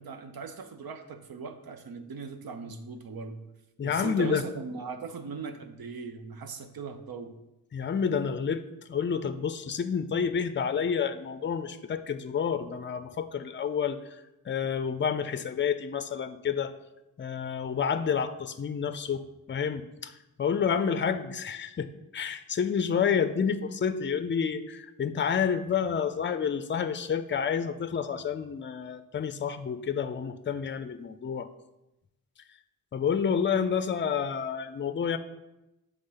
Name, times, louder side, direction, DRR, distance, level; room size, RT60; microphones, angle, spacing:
voice 1, 0.0-3.4 3.8-7.3, right 5 dB, 80° right, 8 dB, 0.8 m, -39 dB
voice 2, 3.8-4.4 7.7-8.6 8.9-14.2 14.5-16.7 17.2-19.2 19.5-20.1 20.4-21.9 22.1-31.5 32.9-35.2, left 7 dB, 35° left, 11 dB, 0.4 m, -29 dB
8.1 x 3.6 x 5.5 m, 0.94 s
wide cardioid pair, 120°, 36 cm